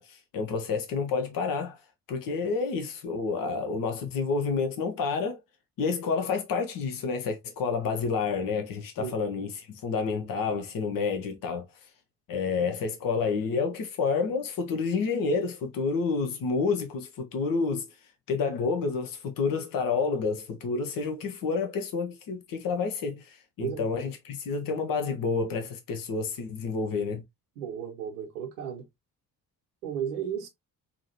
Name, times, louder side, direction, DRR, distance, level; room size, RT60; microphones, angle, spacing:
voice 1, 0.0-1.8 2.1-5.4 5.8-11.6 12.3-17.9 18.3-27.2, left 4 dB, 45° left, 1.0 m, -29 dB
voice 2, 27.5-28.9 29.8-30.5, right 8 dB, 70° right, 1.2 m, -34 dB
4.9 x 2.8 x 2.9 m
figure-of-eight pair, 45°, 48 cm